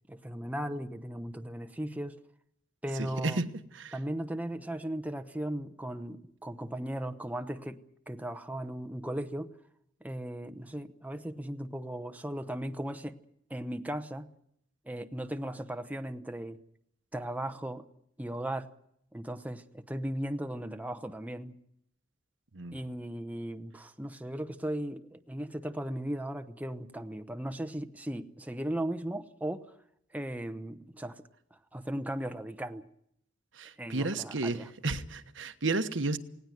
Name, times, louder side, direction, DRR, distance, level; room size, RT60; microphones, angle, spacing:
voice 1, 0.1-2.2 2.8-3.4 3.9-9.6 10.0-13.2 13.5-14.3 14.8-16.6 17.1-17.8 18.2-18.7 19.1-21.6 22.7-29.7 30.1-31.2 31.5-32.9 33.8-34.7, right 1 dB, 10° right, 0.9 m, -37 dB
voice 2, 33.6-36.2, right 3 dB, 70° right, 1.3 m, -32 dB
19.5 x 17.5 x 9.2 m
head